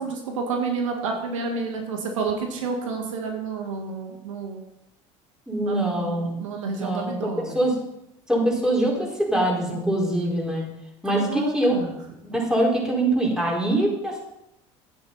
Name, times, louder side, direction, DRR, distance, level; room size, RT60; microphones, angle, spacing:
voice 1, 0.0-4.6 5.6-7.6 11.1-12.0, right 4 dB, 90° right, 2 dB, 1.9 m, -30 dB
voice 2, 5.5-6.3 6.8-7.7 8.3-10.6 11.0-11.7 12.3-14.2, right 1 dB, 5° right, -3 dB, 5.0 m, -23 dB
12.0 x 9.7 x 4.3 m, 0.84 s
hypercardioid pair, 85°, 16 cm